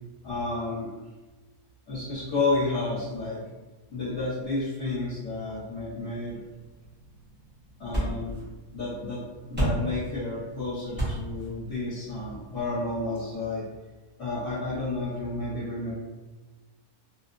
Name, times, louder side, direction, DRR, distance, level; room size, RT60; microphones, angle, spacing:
voice 1, 0.2-0.9 1.9-3.4 3.9-6.4 7.8-8.4 8.7-9.2 9.5-13.6 14.2-15.9, left 2 dB, 50° left, -11 dB, 1.3 m, -31 dB
sound 1, 6.2-13.3, right 1 dB, 10° right, 0.7 m, -35 dB
2.8 x 2.2 x 2.4 m, 1.2 s
omnidirectional pair, 1.6 m